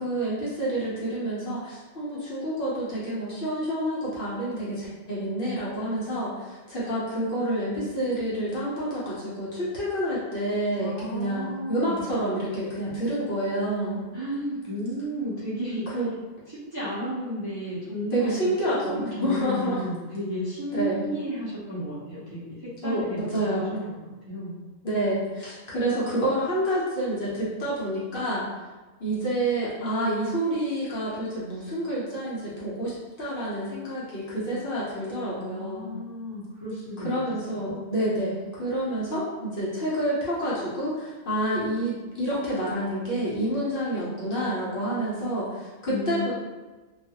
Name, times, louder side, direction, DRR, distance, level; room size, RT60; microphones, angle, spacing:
voice 1, 0.0-14.0 15.9-16.1 18.1-19.9 20.7-21.0 22.8-23.8 24.8-28.5 29.0-36.0 37.0-46.3, right 1 dB, 50° left, -8 dB, 0.8 m, -28 dB
voice 2, 10.8-12.1 14.1-15.9 16.5-18.4 18.7-24.6 35.4-37.1 37.5-37.7 45.9-46.3, equal, 30° right, -10 dB, 0.4 m, -33 dB
2.4 x 2.3 x 2.7 m, 1.2 s
omnidirectional pair, 1.4 m